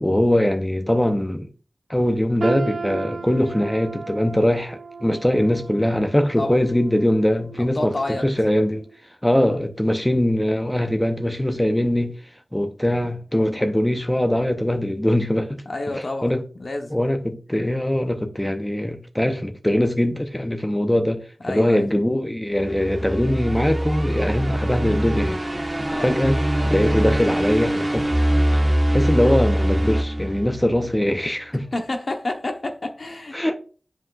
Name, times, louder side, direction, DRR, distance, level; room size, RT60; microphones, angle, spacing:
voice 1, 0.0-1.5 1.9-8.8 9.2-12.1 12.5-16.4 16.9-25.4 26.0-28.1 28.5-31.7 33.3-33.6, left 1 dB, 15° left, 0.6 m, -22 dB
sound 1, 2.4-8.4 8.8-9.0 9.7-9.8, right 4 dB, 70° right, 0.3 m, -35 dB
voice 2, 7.6-8.3 15.6-16.3 16.6-17.0 21.4-21.9 25.9-26.1 31.7-33.4, left 2 dB, 70° left, 0.9 m, -29 dB
sound 2, 22.6-30.9, right 1 dB, 35° right, 1.4 m, -23 dB
7.7 x 5.1 x 2.4 m
wide cardioid pair, 50°, 0 cm